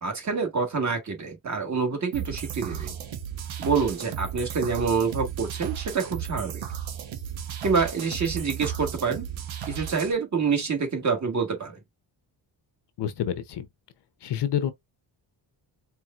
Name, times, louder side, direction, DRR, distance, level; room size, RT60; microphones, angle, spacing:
voice 1, 0.0-2.9 3.6-6.6 7.6-9.3 9.7-11.8, right 5 dB, 40° right, 1.5 m, -27 dB
sound 1, 2.1-10.1, right 9 dB, 90° right, 1.1 m, -34 dB
voice 2, 13.0-13.7 14.2-14.7, left 9 dB, 65° left, 0.8 m, -28 dB
4.6 x 3.3 x 2.4 m
wide cardioid pair, 140°, 45 cm